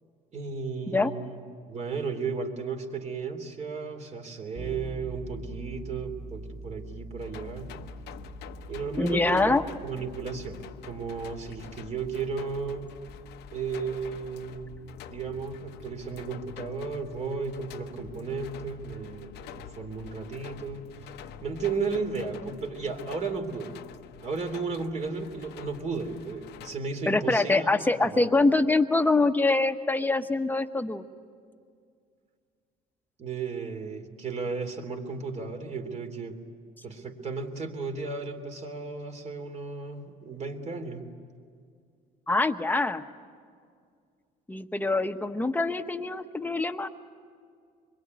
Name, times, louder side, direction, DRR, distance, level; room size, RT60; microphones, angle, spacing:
voice 1, 0.3-1.4 1.7-7.7 8.7-12.9 13.5-20.9 21.4-23.8 24.2-27.7 28.0-28.3 33.2-36.4 36.8-41.0, right 4 dB, 45° right, 4 dB, 3.2 m, -34 dB
sound 1, 4.5-14.4, right 2 dB, 20° right, 2.1 m, -44 dB
sound 2, 7.2-26.8, left 9 dB, 80° left, 0.9 m, -47 dB
voice 2, 9.0-9.6 27.1-31.0 42.3-43.0 44.5-46.9, left 3 dB, 10° left, 7 dB, 1.1 m, -24 dB
26.0 x 22.0 x 9.5 m, 2.2 s
cardioid pair, 110°, 17 cm